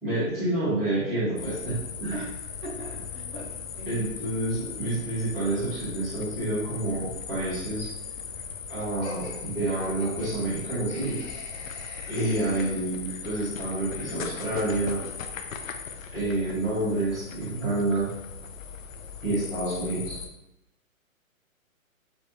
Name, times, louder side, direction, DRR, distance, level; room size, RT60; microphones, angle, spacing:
voice 1, 0.0-2.2 3.9-7.9 8.7-11.2 12.1-15.0 16.1-18.1 19.2-20.2, right 2 dB, ahead, -23 dB, 0.7 m, -28 dB
sound 1, 1.4-20.3, left 6 dB, 70° left, 0.6 m, -38 dB
voice 2, 2.6-4.0, right 2 dB, 35° right, -3 dB, 1.0 m, -40 dB
Laughter, 9.0-13.3, left 1 dB, 50° left, 1.5 m, -40 dB
6.6 x 2.8 x 2.7 m, 0.94 s
hypercardioid pair, 170°, 42 cm